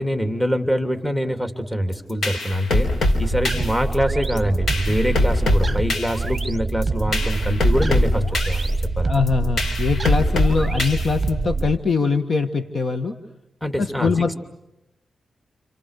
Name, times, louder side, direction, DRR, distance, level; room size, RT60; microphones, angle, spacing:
voice 1, 0.0-9.1 13.6-14.1, equal, 10° left, 7 dB, 3.0 m, -24 dB
sound 1, 1.9-11.6, left 2 dB, 75° left, 4.3 m, -24 dB
sound 2, 3.0-11.8, right 3 dB, 30° right, 1.1 m, -26 dB
voice 2, 9.1-13.2 13.8-14.3, left 4 dB, 55° left, 8 dB, 1.8 m, -22 dB
30.0 x 28.0 x 6.7 m, 0.88 s
cardioid pair, 80°, 0 cm